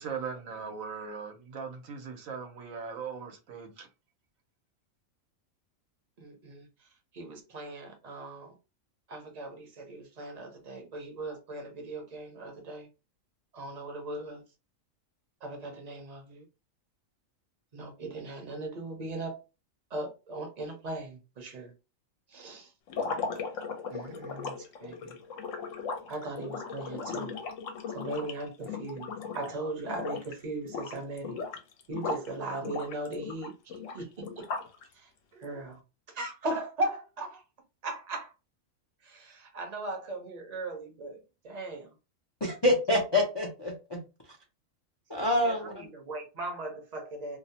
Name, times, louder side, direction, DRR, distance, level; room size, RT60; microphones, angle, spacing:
voice 1, 0.0-3.9, right 6 dB, 85° right, 1.2 m, -39 dB
voice 2, 6.2-6.7 7.1-8.5 9.1-12.9 13.5-14.4 15.4-16.4 17.7-19.4 19.9-21.7 22.3-22.7 23.9-25.2 26.1-27.3 27.9-31.4 31.9-33.5 33.9-34.5 35.0-35.8 36.1-37.4 37.8-38.3 39.0-41.9 45.4-47.4, right 2 dB, 40° right, 0.7 m, -38 dB
sound 1, 22.9-29.5 29.8-30.3 30.6-32.3 32.6-34.8, left 5 dB, 75° left, 0.9 m, -37 dB
voice 3, 42.4-44.0 45.1-45.9, left 1 dB, 40° left, 0.3 m, -27 dB
2.7 x 2.0 x 2.7 m
omnidirectional pair, 1.4 m